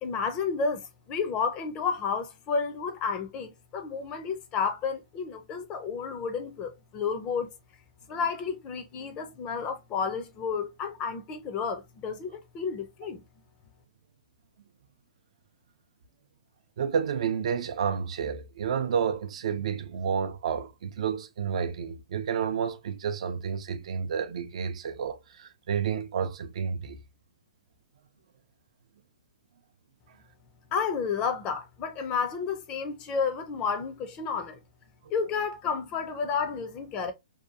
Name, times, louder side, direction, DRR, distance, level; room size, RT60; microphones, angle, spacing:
voice 1, 0.0-7.5 8.1-13.2 30.7-34.6 35.1-37.1, left 5 dB, 25° left, 0.4 m, -31 dB
voice 2, 16.8-27.0, right 7 dB, 60° right, 0.4 m, -30 dB
2.7 x 2.2 x 2.4 m
hypercardioid pair, 155°, 4 cm